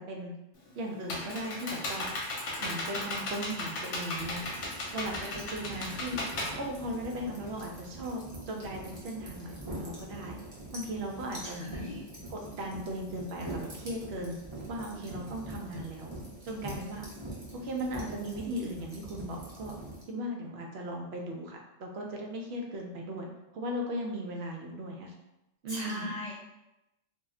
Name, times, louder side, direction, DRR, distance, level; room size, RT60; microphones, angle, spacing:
Computer keyboard, 0.5-7.4, left 2 dB, 75° left, 0.9 m, -36 dB
voice 1, 0.7-2.1 2.6-4.4 4.9-6.2 6.5-8.2 8.5-10.4 10.7-11.9 12.3-14.4 14.7-16.1 16.4-17.1 17.5-19.7 20.1-25.1 25.6-26.2, equal, 70° right, 1 dB, 0.8 m, -37 dB
sound 1, 4.1-20.0, right 1 dB, 30° right, 0.6 m, -44 dB
voice 2, 11.6-12.0 25.7-26.3, left 1 dB, 50° left, -6 dB, 0.5 m, -38 dB
2.3 x 2.1 x 3.5 m, 0.94 s
omnidirectional pair, 1.2 m